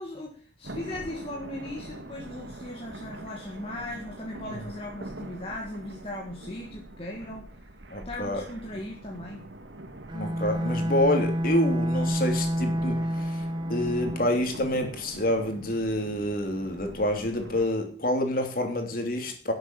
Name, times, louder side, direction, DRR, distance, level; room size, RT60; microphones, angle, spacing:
voice 1, 0.0-7.5 8.1-9.4, left 1 dB, 30° left, 0 dB, 1.9 m, -38 dB
sound 1, 0.6-17.7, right 1 dB, 75° right, 2.0 m, -43 dB
voice 2, 7.9-8.4 10.1-19.5, left 1 dB, 50° left, 4 dB, 3.1 m, -28 dB
Bowed string instrument, 10.1-14.4, equal, 25° right, 0.9 m, -28 dB
12.0 x 8.0 x 7.5 m, 0.43 s
head